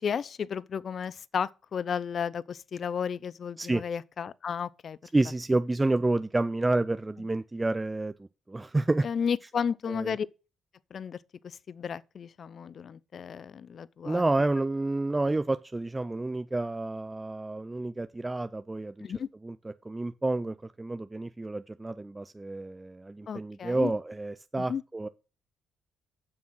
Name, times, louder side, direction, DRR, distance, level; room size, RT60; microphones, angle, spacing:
voice 1, 0.0-5.0 9.0-10.3 10.9-11.2 11.4-14.2 19.0-19.3 23.3-23.9 24.6-24.8, left 7 dB, 50° left, 0.5 m, -33 dB
voice 2, 5.1-8.1 8.5-9.1 9.9-10.2 14.0-19.1 19.4-25.1, right 2 dB, 15° right, 0.4 m, -29 dB
7.5 x 6.3 x 6.0 m
cardioid pair, 90°, 0 cm